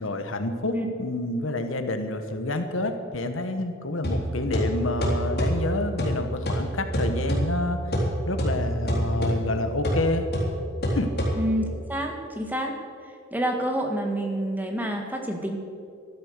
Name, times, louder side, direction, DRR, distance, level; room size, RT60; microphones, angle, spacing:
voice 1, 0.0-7.8 8.3-10.3 10.9-11.1, left 2 dB, 90° left, 7 dB, 1.3 m, -28 dB
sound 1, 4.0-11.8, equal, 55° left, 3.6 m, -27 dB
voice 2, 11.3-12.8 13.3-15.6, right 1 dB, 10° right, 2 dB, 1.7 m, -28 dB
13.5 x 11.5 x 6.7 m, 2.4 s
head